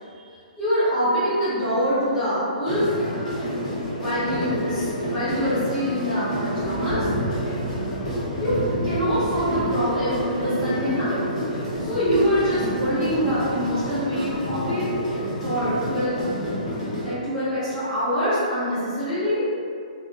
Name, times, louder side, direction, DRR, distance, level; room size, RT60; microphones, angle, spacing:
voice 1, 0.6-2.9 3.9-7.1 8.4-8.5 8.8-11.2 11.8-14.8 15.4-16.2 17.0-19.4, equal, 10° left, -15 dB, 0.9 m, -25 dB
sound 1, 2.7-17.1, equal, 55° left, 0.9 m, -28 dB
2.5 x 2.0 x 2.7 m, 2.4 s
hypercardioid pair, 180°, 5 cm